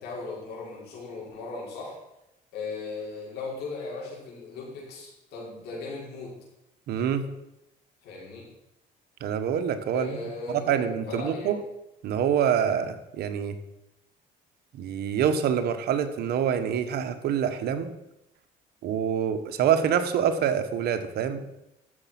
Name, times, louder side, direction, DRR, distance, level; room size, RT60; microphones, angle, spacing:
voice 1, 0.0-2.0 2.5-6.4 8.0-8.5 9.9-11.6, left 3 dB, 75° left, -3 dB, 5.8 m, -37 dB
voice 2, 6.9-7.3 9.2-10.2 10.5-11.6 12.0-13.6 14.7-17.9 18.8-21.5, right 8 dB, 70° right, 8 dB, 1.3 m, -26 dB
13.0 x 7.4 x 6.0 m, 0.88 s
cardioid pair, 110°, 17 cm